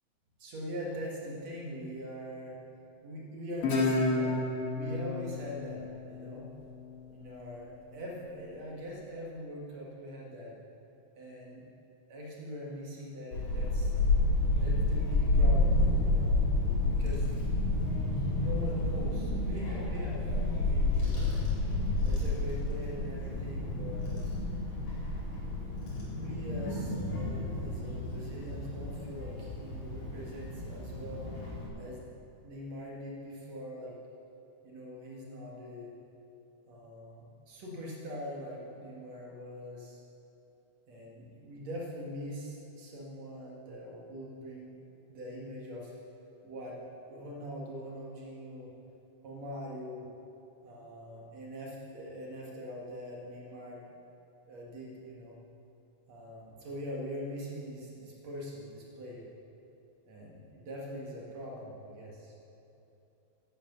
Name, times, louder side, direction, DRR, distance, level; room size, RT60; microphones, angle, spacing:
voice 1, 0.4-2.6 3.0-4.4 4.7-6.5 7.1-10.5 11.2-11.6 12.1-13.9 14.6-16.4 16.9-17.3 18.4-21.4 22.0-24.2 25.9-31.4 31.8-32.0 32.4-34.0 34.6-35.9 36.7-40.0 40.9-44.8 45.1-45.9 46.4-46.8 47.0-48.7 49.2-50.1 50.6-53.8 54.5-55.3 56.1-59.2 60.1-62.3, equal, 65° right, -3 dB, 3.2 m, -42 dB
Guitar, 3.6-6.9, left 2 dB, 55° left, 2.6 m, -31 dB
Child speech kid speaking / Wind, 13.3-31.7, left 2 dB, 70° left, 5.3 m, -30 dB
11.5 x 11.5 x 8.0 m, 2.9 s
omnidirectional pair, 3.3 m